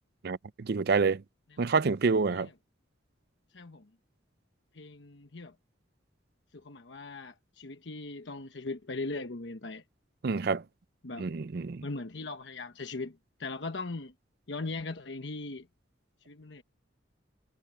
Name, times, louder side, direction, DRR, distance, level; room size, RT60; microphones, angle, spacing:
voice 1, 0.2-1.2 1.6-2.5 10.2-10.6 11.2-11.8, right 4 dB, 55° right, 0.5 m, -27 dB
voice 2, 3.5-3.9 4.7-5.6 6.5-9.8 11.0-11.3 11.8-14.1 14.5-15.7 16.3-16.6, left 3 dB, 65° left, 1.1 m, -39 dB
head